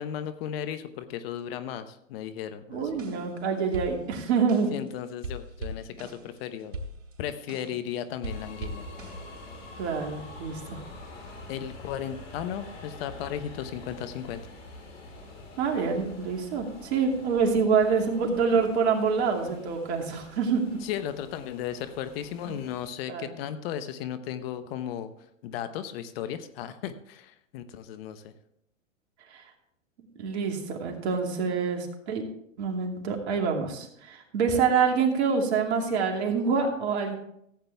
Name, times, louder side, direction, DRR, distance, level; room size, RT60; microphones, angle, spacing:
voice 1, 0.0-3.0 4.7-6.8 7.2-8.8 11.5-14.4 20.8-25.1 25.4-28.3 34.5-34.6, left 10 dB, 50° left, 11 dB, 1.0 m, -35 dB
voice 2, 2.7-4.7 9.8-10.8 15.6-20.8 23.1-23.4 29.3-29.4 30.2-32.2 32.6-37.1, right 5 dB, 55° right, 2 dB, 2.6 m, -26 dB
sound 1, 2.9-3.4 3.7-4.9 5.2-7.9 8.2-9.6, right 1 dB, 80° right, 3.6 m, -40 dB
sound 2, 8.2-22.9, left 2 dB, 65° left, 3.7 m, -46 dB
15.0 x 8.8 x 3.4 m, 0.73 s
hypercardioid pair, 115°, 39 cm